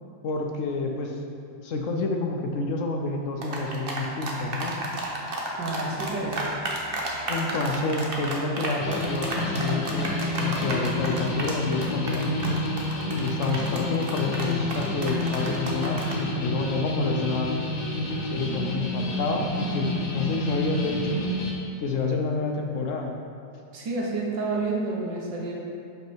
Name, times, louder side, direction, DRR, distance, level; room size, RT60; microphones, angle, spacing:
voice 1, 0.2-1.2 1.6-4.7 7.3-12.6 13.1-17.6 18.2-21.2 21.8-23.2, left 3 dB, 80° left, 1 dB, 0.7 m, -28 dB
sound 1, 3.4-16.2, right 2 dB, 45° right, 0.8 m, -32 dB
voice 2, 5.6-6.5 23.7-25.5, right 3 dB, 75° right, -3 dB, 1.8 m, -29 dB
sound 2, 8.8-21.5, left 1 dB, 60° left, 1.4 m, -29 dB
6.2 x 5.4 x 4.5 m, 2.7 s
omnidirectional pair, 2.0 m